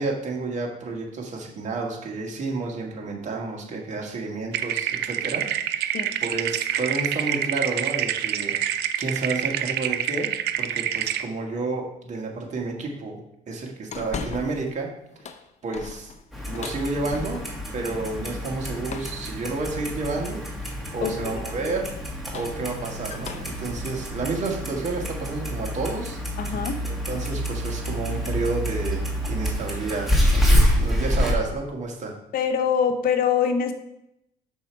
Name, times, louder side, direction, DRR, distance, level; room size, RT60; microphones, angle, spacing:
voice 1, 0.0-10.3 10.6-13.2 13.5-14.9 15.6-16.1 16.5-17.4 17.7-20.4 20.9-21.9 22.3-26.2 26.8-32.1, right 3 dB, 45° right, 0 dB, 1.8 m, -30 dB
sound 1, 4.5-11.2, right 10 dB, 75° right, 0.5 m, -27 dB
sound 2, 13.9-14.7 15.1-17.8 18.9-19.3 20.3-20.8 22.0-25.5 25.9-26.0 27.6-27.8 28.1-28.4 28.7-29.0 29.3-30.3, left 5 dB, 45° left, 0.6 m, -40 dB
Clock, 16.3-31.3, equal, ahead, 1.9 m, -27 dB
voice 2, 21.0-21.7 26.4-26.8 32.3-33.7, left 7 dB, 60° left, 8 dB, 0.9 m, -24 dB
6.4 x 5.5 x 4.6 m, 0.81 s
cardioid pair, 110°, 17 cm